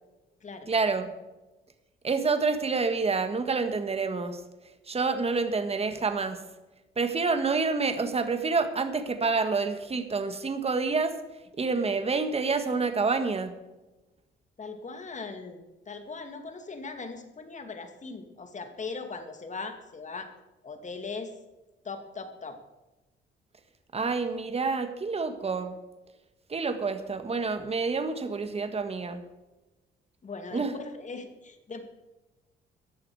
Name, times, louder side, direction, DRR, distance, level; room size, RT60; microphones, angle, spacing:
voice 1, 0.7-1.1 2.0-4.4 4.9-6.4 7.0-11.1 11.6-13.5 23.9-25.8 26.5-29.2 30.5-30.7, right 4 dB, 30° right, 9 dB, 1.7 m, -28 dB
voice 2, 14.6-20.3 20.6-21.3 21.8-22.6 30.2-31.8, left 4 dB, 35° left, 7 dB, 2.4 m, -39 dB
15.5 x 11.0 x 4.9 m, 1.1 s
cardioid pair, 90°, 20 cm